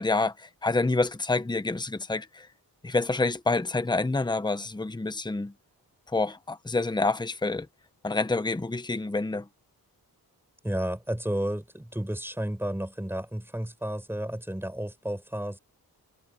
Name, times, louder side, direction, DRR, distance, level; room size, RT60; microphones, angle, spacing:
voice 1, 0.0-2.5 2.8-5.5 6.1-7.7 8.0-9.5, left 3 dB, 10° left, 0.9 m, -27 dB
voice 2, 10.6-15.6, right 1 dB, 5° right, 4.5 m, -32 dB
wide cardioid pair, 120°, 38 cm